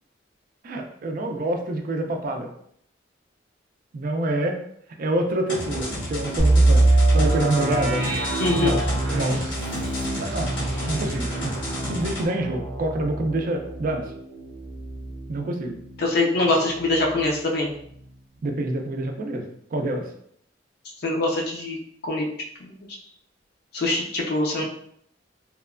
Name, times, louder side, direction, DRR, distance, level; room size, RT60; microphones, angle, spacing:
voice 1, 0.6-2.5 3.9-4.6 5.0-8.0 8.6-8.8 9.1-9.5 10.2-10.5 10.9-11.6 11.8-14.1 15.3-15.8 18.4-20.1, right 1 dB, 50° right, 4 dB, 0.4 m, -27 dB
sound 1, 5.5-12.3, equal, 80° left, 0.8 m, -32 dB
sound 2, 6.4-16.1 16.5-16.6 17.1-17.3, right 2 dB, 85° right, 0.6 m, -24 dB
Vehicle horn car horn honking, 8.0-9.4, right 1 dB, 5° left, 0.6 m, -37 dB
voice 2, 8.4-8.7 16.0-17.7 21.0-21.8 22.0-22.3 22.6-23.0 23.7-24.6, left 2 dB, 60° left, -1 dB, 0.5 m, -23 dB
2.9 x 2.2 x 2.4 m, 0.68 s
head